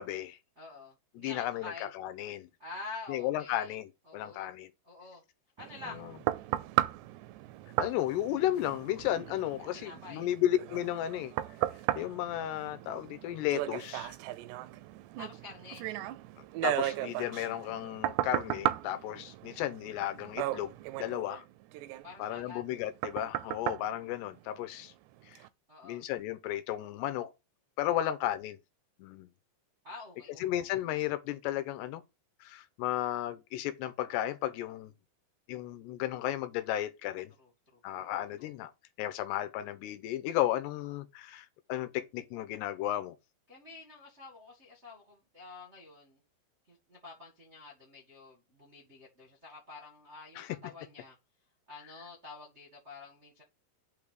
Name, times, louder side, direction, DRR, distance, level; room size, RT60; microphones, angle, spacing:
voice 1, 0.0-0.4 1.2-2.5 3.1-4.7 7.8-11.3 12.0-14.2 16.6-20.7 21.0-21.4 22.2-24.9 25.3-25.4 25.8-27.3 27.8-28.6 29.0-29.3 30.4-32.0 32.4-34.9 35.5-37.3 37.8-38.7 39.0-43.2 50.4-50.6, left 13 dB, 80° left, 2.8 m, -34 dB
voice 2, 0.6-1.9 2.6-3.7 4.1-4.5 4.8-5.2 5.6-6.0 9.7-10.3 15.2-15.9 22.0-22.6 25.7-26.0 28.0-28.1 29.8-30.7 37.4-38.1 38.4-38.5 43.5-46.2 46.7-51.2 51.7-53.4, left 3 dB, 45° right, 0.8 m, -48 dB
sound 1, 5.6-24.9 25.4-25.5, right 15 dB, 80° right, 2.7 m, -36 dB
8.5 x 3.6 x 6.6 m
omnidirectional pair, 5.0 m